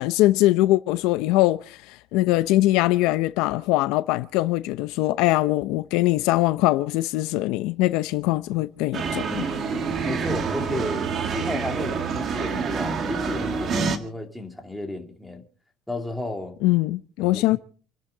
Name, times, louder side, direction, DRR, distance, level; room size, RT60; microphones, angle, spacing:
voice 1, 0.0-9.4 16.6-17.6, left 17 dB, 75° left, 0.7 m, -22 dB
sound 1, 8.9-14.0, right 5 dB, 40° right, 1.9 m, -27 dB
voice 2, 10.0-15.4 15.9-16.5 17.2-17.6, left 2 dB, 5° left, 2.9 m, -33 dB
29.0 x 11.0 x 4.0 m
cardioid pair, 145°, 0 cm